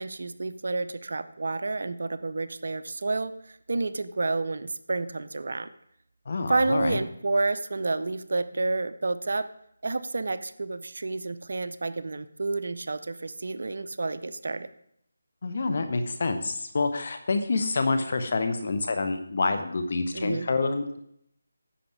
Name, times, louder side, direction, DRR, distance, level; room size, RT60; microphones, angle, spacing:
voice 1, 0.0-5.7 6.5-9.5 9.8-14.7 20.1-20.5, right 3 dB, 60° right, 12 dB, 0.6 m, -30 dB
voice 2, 6.3-7.0 15.4-21.0, left 3 dB, 50° left, 8 dB, 1.2 m, -27 dB
10.0 x 7.2 x 4.8 m, 0.73 s
figure-of-eight pair, 160°, 0 cm